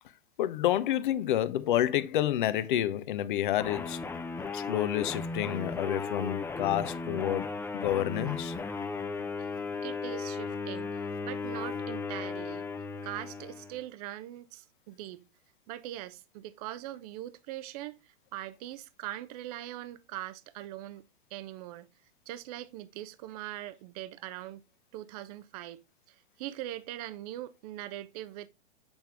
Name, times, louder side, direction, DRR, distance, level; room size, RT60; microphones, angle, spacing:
voice 1, 0.4-4.0 4.5-8.5, left 12 dB, 50° left, 0.9 m, -29 dB
sound 1, 3.6-13.8, left 4 dB, 5° left, 0.7 m, -36 dB
voice 2, 9.7-10.9 11.2-12.7 13.0-15.2 15.7-21.0 21.3-21.9 22.3-24.6 24.9-25.8 26.4-28.5, right 14 dB, 35° right, 0.8 m, -41 dB
8.8 x 5.8 x 3.4 m
figure-of-eight pair, 105°, 32 cm